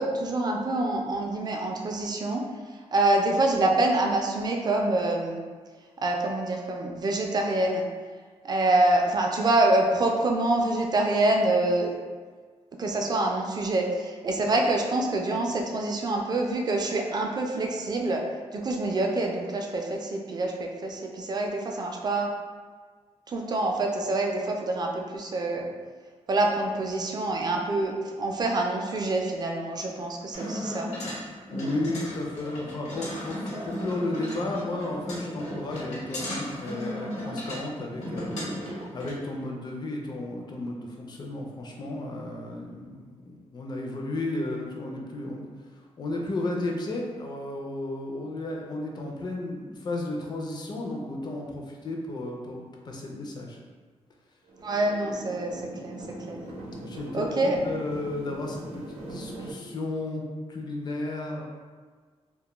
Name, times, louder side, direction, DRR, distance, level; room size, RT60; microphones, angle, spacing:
voice 1, 0.0-2.4 2.9-5.4 6.0-7.8 8.4-12.0 12.8-18.2 18.5-22.3 23.3-25.7 26.3-30.9 54.6-56.4 57.1-57.6, right 2 dB, 35° right, 1 dB, 0.4 m, -26 dB
sound 1, 30.3-39.1, equal, 70° left, 1.0 m, -35 dB
voice 2, 31.5-38.6 38.9-45.5 46.0-53.6 56.8-61.4, left 2 dB, 35° left, 0 dB, 0.4 m, -33 dB
sound 2, 54.5-59.5, right 1 dB, 90° right, 0.6 m, -41 dB
2.2 x 2.1 x 2.9 m, 1.5 s
cardioid pair, 105°, 12 cm